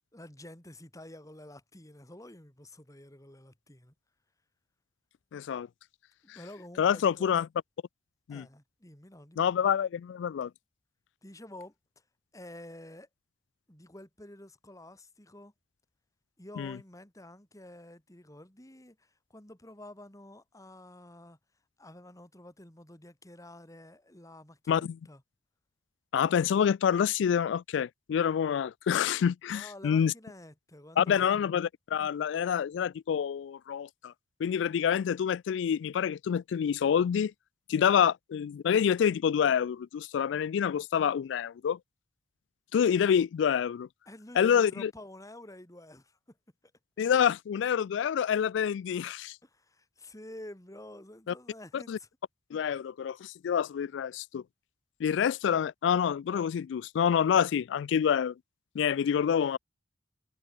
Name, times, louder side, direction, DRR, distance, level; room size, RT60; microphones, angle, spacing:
voice 1, 0.1-3.9 6.2-7.4 8.3-9.7 11.2-11.7 12.3-13.1 13.7-15.5 16.4-21.4 21.8-25.2 29.5-31.4 44.1-46.4 49.4-52.1, left 1 dB, 20° left, 3.1 m, -49 dB
voice 2, 5.3-5.7 6.8-7.5 8.3-8.4 9.4-10.5 16.6-16.8 24.7-25.0 26.1-30.1 31.0-34.1 34.4-37.3 37.7-41.8 42.7-43.9 44.4-44.9 47.0-49.4 51.3-51.4 51.7-52.0 52.5-54.4 55.0-58.3 58.7-59.6, left 8 dB, 75° left, 0.3 m, -27 dB
head